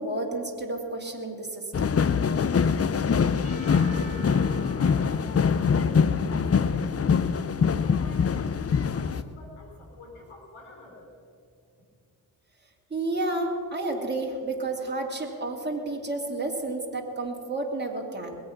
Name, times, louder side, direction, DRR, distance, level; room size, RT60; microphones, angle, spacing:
voice 1, 0.0-1.9 12.9-18.4, right 2 dB, 20° right, 0 dB, 2.7 m, -31 dB
sound 1, 1.7-9.2, left 6 dB, 30° left, 0.6 m, -24 dB
voice 2, 3.0-11.1, left 2 dB, 80° left, 1 dB, 3.7 m, -47 dB
Percussion / Church bell, 3.4-7.6, left 1 dB, 15° left, 1.6 m, -48 dB
20.5 x 8.2 x 5.8 m, 2.3 s
supercardioid pair, 40°, 49 cm